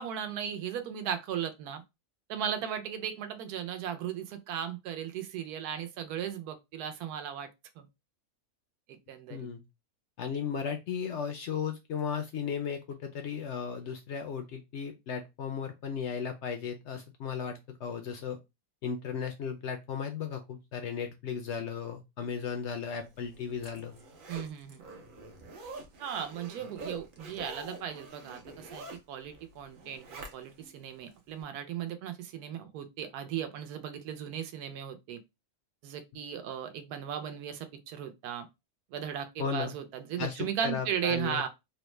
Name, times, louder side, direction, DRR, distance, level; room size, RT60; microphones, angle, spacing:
voice 1, 0.0-1.8 2.3-7.5 7.8-7.9 8.9-9.4 24.3-24.8 26.0-35.2 35.8-38.5 38.9-41.5, right 9 dB, 85° right, 1.1 m, -36 dB
voice 2, 9.3-9.6 10.2-18.4 18.8-23.9 39.4-39.7 40.2-41.5, left 6 dB, 70° left, 0.7 m, -35 dB
Zipper (clothing), 23.1-30.7 31.2-31.3, right 2 dB, 55° right, 0.6 m, -46 dB
3.3 x 2.1 x 3.1 m
omnidirectional pair, 1.6 m